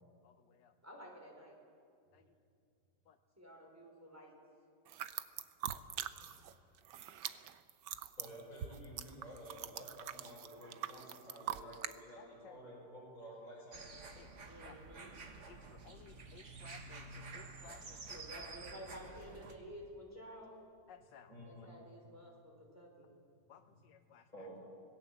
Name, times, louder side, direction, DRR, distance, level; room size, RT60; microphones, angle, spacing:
voice 1, 0.2-0.7 2.1-2.2 3.1-3.2 12.2-12.6 14.2-14.3 14.6-14.8 15.5-18.2 20.9-21.3 23.5-24.3, left 9 dB, 85° left, 7 dB, 1.4 m, -59 dB
voice 2, 0.8-1.6 3.4-4.3 14.5-15.1 18.1-20.6 21.4-23.1, equal, 10° right, -1 dB, 4.7 m, -52 dB
sound 1, 4.9-6.5 6.8-12.0, right 11 dB, 80° right, 1.4 m, -43 dB
voice 3, 5.9-6.3 8.2-13.8 15.7-17.2 17.8-17.9 21.2-21.7 23.6-23.8 24.3-24.6, right 1 dB, 25° left, -5 dB, 5.5 m, -53 dB
sound 2, 13.7-19.5, right 4 dB, 45° right, 1.9 m, -51 dB
26.0 x 18.5 x 7.6 m, 2.5 s
omnidirectional pair, 1.9 m